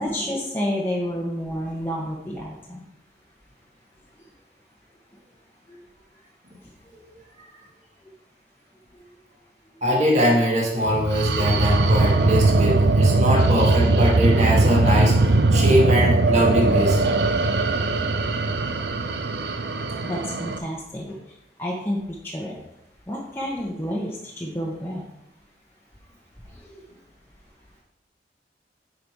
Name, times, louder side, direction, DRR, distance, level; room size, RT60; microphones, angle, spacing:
voice 1, 0.0-2.9 5.7-5.8 6.8-7.2 8.9-9.0 17.0-17.2 18.9-19.0 20.0-22.6 23.1-25.0 26.4-26.8, equal, 10° left, -4 dB, 1.0 m, -30 dB
voice 2, 9.8-15.2 15.5-17.0, equal, 40° right, -3 dB, 2.2 m, -21 dB
sound 1, 10.8-20.6, right 2 dB, 70° right, 0.7 m, -20 dB
9.4 x 5.2 x 4.7 m, 0.85 s
head